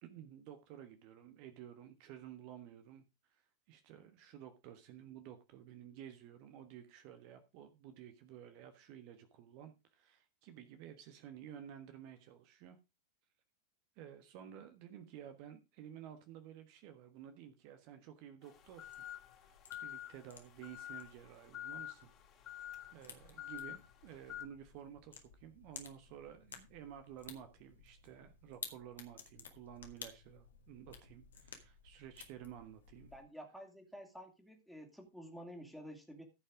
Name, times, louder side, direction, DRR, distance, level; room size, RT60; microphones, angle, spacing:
voice 1, 0.0-3.4 3.7-12.8 14.0-18.9 19.4-22.1 22.5-33.1, right 10 dB, 45° right, 8 dB, 1.4 m, -53 dB
sound 1, 18.4-24.5, left 12 dB, 35° left, 2.4 m, -48 dB
sound 2, 18.5-33.2, left 6 dB, 70° left, 2.0 m, -56 dB
voice 2, 33.1-36.2, equal, ahead, 4 dB, 2.7 m, -51 dB
15.0 x 5.7 x 4.9 m, 0.26 s
figure-of-eight pair, 90°, 0 cm